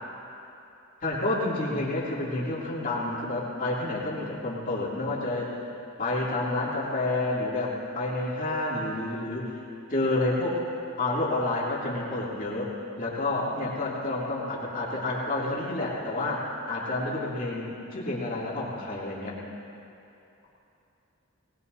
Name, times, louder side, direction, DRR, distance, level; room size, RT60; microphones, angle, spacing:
voice 1, 1.0-5.6 6.0-9.6 9.9-10.6 11.0-19.4, left 2 dB, 40° left, -6 dB, 2.7 m, -29 dB
20.5 x 19.0 x 2.7 m, 2.9 s
head